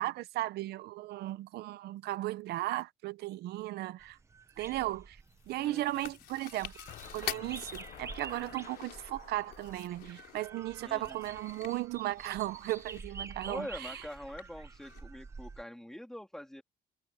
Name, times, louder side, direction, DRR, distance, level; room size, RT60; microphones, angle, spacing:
voice 1, 0.0-4.2 4.6-5.2 5.5-6.7 7.1-13.9, right 16 dB, 85° right, 0.7 m, -36 dB
sound 1, 4.0-15.6, right 4 dB, 15° right, 0.8 m, -49 dB
Chewing mastication, 5.2-15.0, left 14 dB, 85° left, 4.0 m, -48 dB
voice 2, 5.6-6.1 10.8-11.2 13.4-16.6, left 1 dB, 5° left, 3.2 m, -44 dB
sound 2, 6.9-11.8, left 12 dB, 50° left, 0.8 m, -53 dB
cardioid pair, 175°, 16 cm